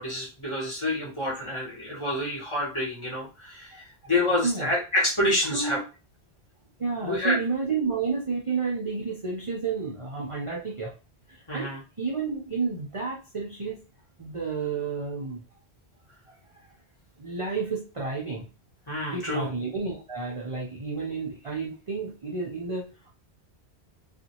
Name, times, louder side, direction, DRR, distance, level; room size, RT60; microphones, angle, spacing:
voice 1, 0.0-5.8 7.0-7.4 11.5-11.8 18.9-19.5, left 1 dB, 30° left, -6 dB, 1.4 m, -28 dB
voice 2, 3.7-4.1 4.4-4.7 5.5-5.8 6.8-10.9 11.3-11.7 12.0-13.8 14.2-15.4 16.3-16.4 17.2-18.5 19.1-23.1, right 4 dB, 40° right, -2 dB, 0.5 m, -31 dB
2.6 x 2.5 x 2.7 m, 0.32 s
omnidirectional pair, 1.1 m